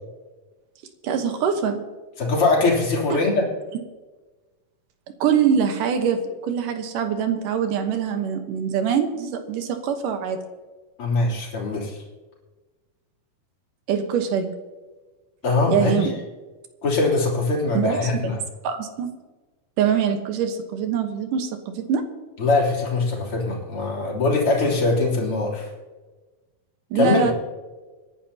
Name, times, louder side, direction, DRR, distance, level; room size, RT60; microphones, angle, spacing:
voice 1, 1.0-1.8 3.1-3.2 5.2-10.4 13.9-14.5 15.7-16.1 17.7-18.0 18.6-19.2 19.8-22.0 26.9-27.3, right 7 dB, 75° right, 6 dB, 2.7 m, -23 dB
voice 2, 2.2-3.5 11.0-12.0 15.4-16.1 16.8-18.4 22.4-25.7 27.0-27.2, left 3 dB, 40° left, -3 dB, 3.8 m, -22 dB
25.5 x 11.0 x 2.9 m, 1.3 s
omnidirectional pair, 3.9 m